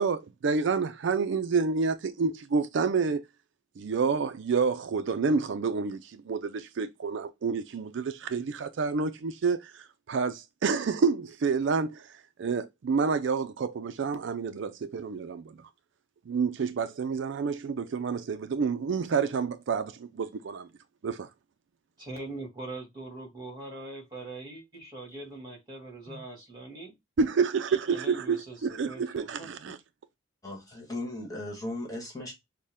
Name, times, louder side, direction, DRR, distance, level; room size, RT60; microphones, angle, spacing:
voice 1, 0.0-3.2 3.8-12.1 12.4-15.5 16.3-20.0 20.5-20.6 21.0-21.3 27.2-29.8, right 5 dB, 70° right, 0.4 m, -28 dB
voice 2, 22.0-26.9 27.9-29.7, right 2 dB, 25° right, 2.1 m, -42 dB
voice 3, 30.4-32.3, left 1 dB, 20° left, 1.5 m, -37 dB
6.4 x 2.2 x 3.5 m
head